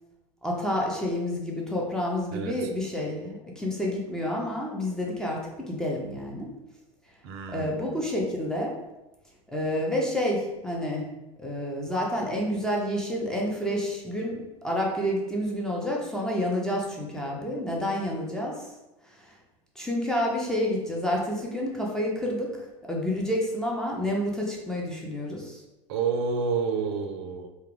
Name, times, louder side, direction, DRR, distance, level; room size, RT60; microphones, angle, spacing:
voice 1, 0.4-6.5 7.5-8.7 9.5-11.1 11.4-18.7 19.1-19.3 19.8-25.6, left 1 dB, 5° left, -3 dB, 0.6 m, -29 dB
voice 2, 2.3-2.7 7.2-8.0 25.9-27.5, right 5 dB, 60° right, 5 dB, 0.4 m, -29 dB
2.2 x 2.1 x 3.1 m, 0.98 s
hypercardioid pair, 80°, 16 cm